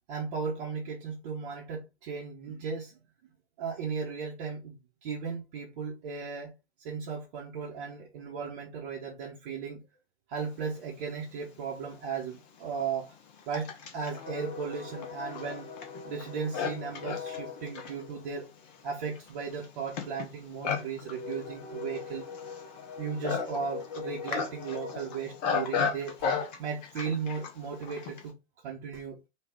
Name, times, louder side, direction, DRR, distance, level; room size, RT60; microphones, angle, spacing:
voice 1, 0.1-3.0 3.6-4.8 5.0-6.5 6.8-9.8 10.3-13.1 13.5-15.7 16.1-18.5 18.8-22.3 23.0-26.3 26.6-28.4 28.6-29.2, right 6 dB, 35° right, 0.8 m, -36 dB
Livestock farm animals working animals, 11.5-11.6 12.4-28.3, left 6 dB, 35° left, 0.8 m, -36 dB
3.5 x 2.3 x 3.3 m
figure-of-eight pair, 110°, 37 cm